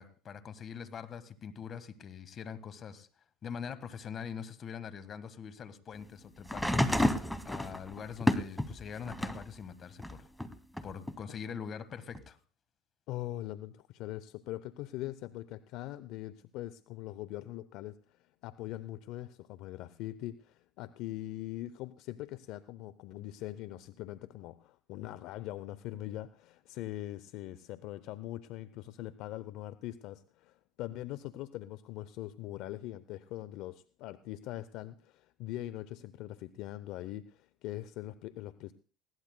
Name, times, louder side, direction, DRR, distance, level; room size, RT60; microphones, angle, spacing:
voice 1, 0.0-3.1 3.4-6.8 7.4-10.3 10.8-12.4, left 7 dB, 40° left, 12 dB, 1.4 m, -43 dB
sound 1, 6.4-9.5 10.0-11.1 12.1-12.2, left 1 dB, 5° left, 1.1 m, -31 dB
voice 2, 13.1-38.7, left 15 dB, 65° left, 15 dB, 0.5 m, -42 dB
20.0 x 16.5 x 2.2 m, 0.39 s
supercardioid pair, 90°, 0 cm